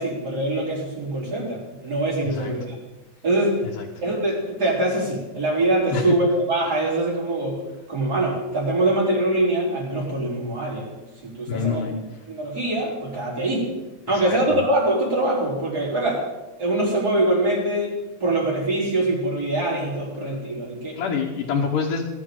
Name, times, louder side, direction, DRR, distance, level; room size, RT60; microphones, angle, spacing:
voice 1, 0.0-2.7 3.2-3.6 4.0-7.6 7.9-10.9 11.2-11.8 12.3-13.7 14.1-16.3 16.6-21.0, right 1 dB, 30° right, -4 dB, 4.4 m, -23 dB
voice 2, 11.5-11.9 14.1-14.6 21.0-22.0, left 6 dB, 85° left, -2 dB, 2.8 m, -26 dB
18.0 x 12.0 x 3.9 m, 1.1 s
omnidirectional pair, 3.6 m